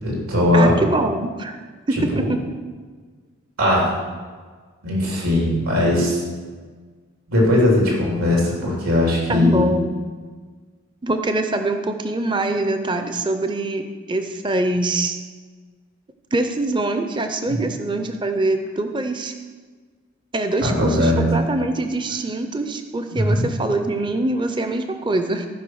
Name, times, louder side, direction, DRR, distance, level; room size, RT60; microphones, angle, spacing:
voice 1, 0.0-0.8 2.1-2.3 3.6-3.9 4.8-6.2 7.3-9.7 17.5-17.6 20.6-21.3 23.1-23.5, left 1 dB, 90° right, -3 dB, 3.4 m, -19 dB
voice 2, 0.5-1.6 1.9-2.4 9.3-9.9 11.0-15.2 16.3-19.3 20.3-25.5, right 2 dB, 20° right, 7 dB, 0.5 m, -23 dB
14.5 x 5.3 x 6.3 m, 1.5 s
head